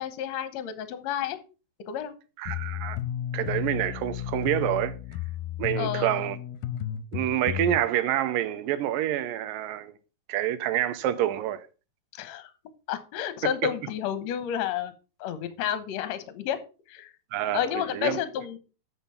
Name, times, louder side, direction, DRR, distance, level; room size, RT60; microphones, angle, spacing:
voice 1, 0.0-1.4 1.8-2.1 5.8-6.2 12.1-12.5 12.9-14.9 15.2-16.6 16.9-17.1 17.5-18.6, left 10 dB, 65° left, 1.8 m, -31 dB
voice 2, 2.4-3.0 3.3-5.0 5.6-6.4 7.1-9.9 10.3-11.6 17.3-18.2, right 12 dB, 85° right, 2.3 m, -27 dB
sound 1, 2.5-7.8, left 10 dB, 90° left, 2.4 m, -33 dB
8.2 x 5.4 x 5.6 m
omnidirectional pair, 4.0 m